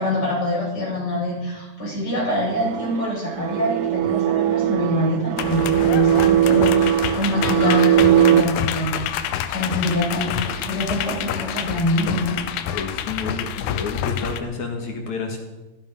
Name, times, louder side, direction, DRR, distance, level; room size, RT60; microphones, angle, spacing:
voice 1, 0.0-8.9 9.5-12.4, left 1 dB, 25° left, -4 dB, 7.4 m, -25 dB
sound 1, 2.5-8.4, right 12 dB, 90° right, 2.9 m, -19 dB
sound 2, 5.4-14.4, left 10 dB, 80° left, 2.9 m, -28 dB
voice 2, 12.7-15.4, left 4 dB, 55° left, 3 dB, 2.5 m, -30 dB
15.5 x 13.0 x 5.4 m, 1.1 s
omnidirectional pair, 4.8 m